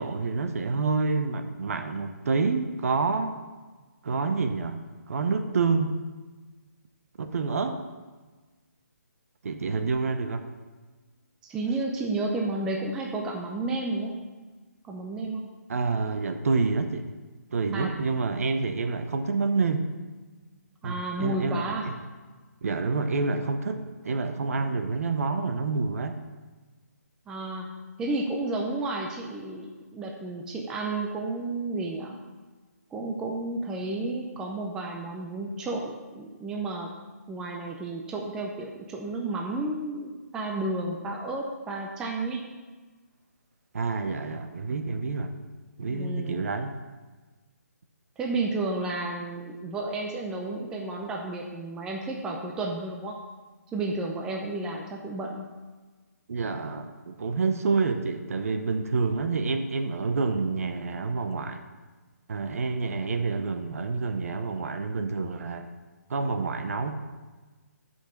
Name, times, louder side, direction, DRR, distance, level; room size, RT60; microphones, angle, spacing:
voice 1, 0.0-3.4 4.0-4.8 5.1-6.0 7.2-7.8 9.4-10.4 15.7-17.0 17.5-19.9 20.8-22.0 22.6-26.2 43.7-45.3 45.8-46.7 56.3-61.6 62.3-65.7 66.1-67.0, right 4 dB, 55° right, 7 dB, 0.8 m, -28 dB
voice 2, 11.4-14.2 14.8-15.4 17.7-17.9 20.8-21.9 27.3-27.7 28.0-32.2 32.9-36.9 37.3-42.4 45.9-46.5 48.2-53.2 53.7-55.4, right 2 dB, 5° right, 0 dB, 0.5 m, -32 dB
6.6 x 5.4 x 6.6 m, 1.3 s
hypercardioid pair, 155°, 9 cm